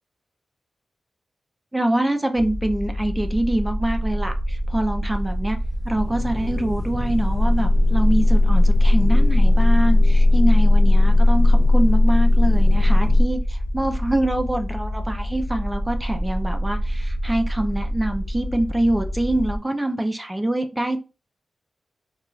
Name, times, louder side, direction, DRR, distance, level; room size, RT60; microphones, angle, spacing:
voice 1, 1.7-5.6 5.8-21.0, right 1 dB, 15° right, 0.4 m, -25 dB
sound 1, 2.3-19.6, equal, 35° left, 0.6 m, -27 dB
sound 2, 5.9-13.2, left 2 dB, 90° right, 0.4 m, -16 dB
2.3 x 2.3 x 3.0 m
cardioid pair, 75°, 0 cm